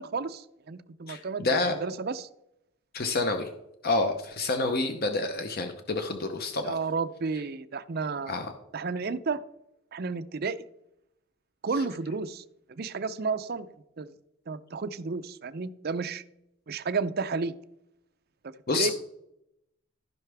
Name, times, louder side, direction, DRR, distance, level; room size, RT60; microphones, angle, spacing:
voice 1, 0.0-2.3 6.6-8.3 8.7-9.4 9.9-10.6 11.6-12.4 12.7-13.7 14.0-14.1 14.5-16.2 16.7-17.5 18.7-18.9, right 4 dB, 50° right, 12 dB, 0.5 m, -32 dB
voice 2, 1.1-1.7 2.9-3.5 3.8-6.8 8.3-8.5 18.7-18.9, left 3 dB, 50° left, 6 dB, 0.8 m, -28 dB
14.5 x 5.7 x 3.4 m, 0.83 s
head